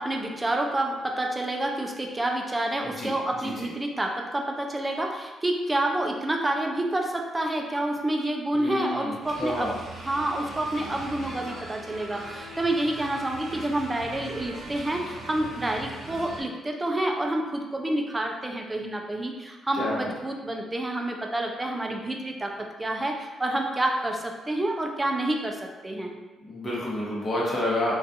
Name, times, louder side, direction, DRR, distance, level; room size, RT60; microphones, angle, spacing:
voice 1, 0.0-26.1, right 1 dB, 20° right, 2 dB, 0.3 m, -28 dB
voice 2, 8.5-9.1 9.4-9.7 19.8-20.0 26.5-27.9, left 1 dB, 25° left, -6 dB, 0.9 m, -29 dB
sound 1, 9.2-16.4, right 2 dB, 65° right, 0.7 m, -40 dB
2.3 x 2.3 x 2.6 m, 1.2 s
cardioid pair, 90°, 0 cm